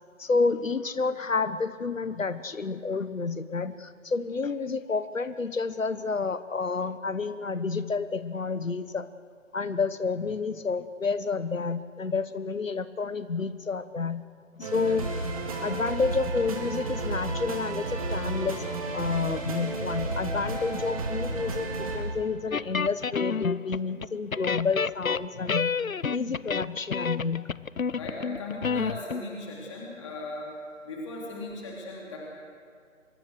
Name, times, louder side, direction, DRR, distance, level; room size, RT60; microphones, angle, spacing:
voice 1, 0.2-9.1 9.5-14.2 14.6-15.1 15.6-25.7 26.1-27.5, left 4 dB, 70° left, 14 dB, 1.3 m, -30 dB
sound 1, 14.6-22.0, right 2 dB, 25° right, 2.9 m, -32 dB
sound 2, 22.5-24.1 24.3-29.2, left 5 dB, 90° left, 0.7 m, -29 dB
voice 2, 27.9-30.5 30.8-32.2, left 2 dB, 20° left, -3 dB, 3.4 m, -38 dB
25.0 x 22.0 x 6.6 m, 2.3 s
figure-of-eight pair, 155°, 40 cm